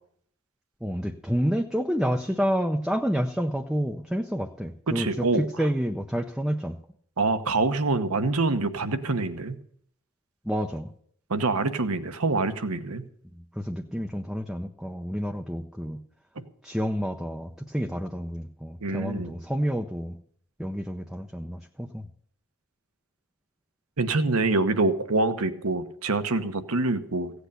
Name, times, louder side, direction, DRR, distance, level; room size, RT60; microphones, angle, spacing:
voice 1, 0.8-6.8 10.5-10.9 13.6-16.0 16.6-20.2 20.6-22.1, equal, ahead, 4 dB, 0.5 m, -29 dB
voice 2, 4.9-5.5 7.2-9.6 11.3-13.0 18.8-19.3 24.0-27.3, right 3 dB, 80° right, 10 dB, 1.1 m, -25 dB
16.0 x 8.2 x 6.8 m, 0.64 s
head